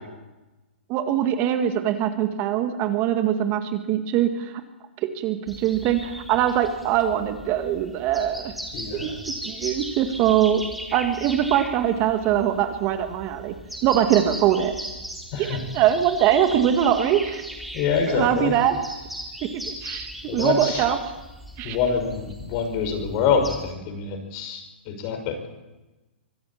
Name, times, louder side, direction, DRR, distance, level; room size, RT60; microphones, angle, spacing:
voice 1, 0.9-4.5 5.2-8.5 8.9-10.6 10.9-13.5 13.8-14.7 15.4-17.4 18.1-18.8 19.7-21.0 21.6-21.8, right 10 dB, 35° right, 7 dB, 2.0 m, -22 dB
sound 1, 5.5-23.7, equal, ahead, 3.7 m, -38 dB
voice 2, 8.7-9.2 15.3-15.6 17.7-18.5 20.3-20.8 21.6-25.4, left 6 dB, 40° left, 6 dB, 5.7 m, -26 dB
24.5 x 12.5 x 8.8 m, 1.1 s
hypercardioid pair, 125°, 6 cm